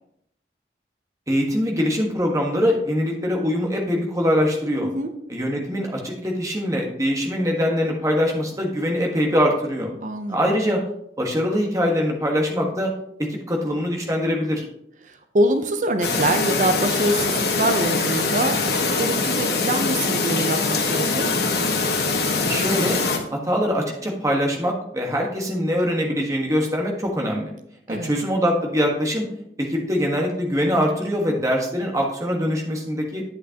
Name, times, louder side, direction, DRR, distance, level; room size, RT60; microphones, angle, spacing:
voice 1, 1.3-4.9 5.3-9.9 10.3-10.8 11.2-12.9 13.2-14.6 22.4-23.0 23.3-27.5 27.9-29.3 29.6-33.2, equal, 20° right, 0 dB, 1.4 m, -23 dB
voice 2, 10.0-10.6 15.0-21.4 27.9-28.1, right 1 dB, 45° right, 7 dB, 0.6 m, -24 dB
Chirp tweet, 16.0-23.2, left 3 dB, 65° left, 1.2 m, -23 dB
9.8 x 8.2 x 2.9 m, 0.75 s
head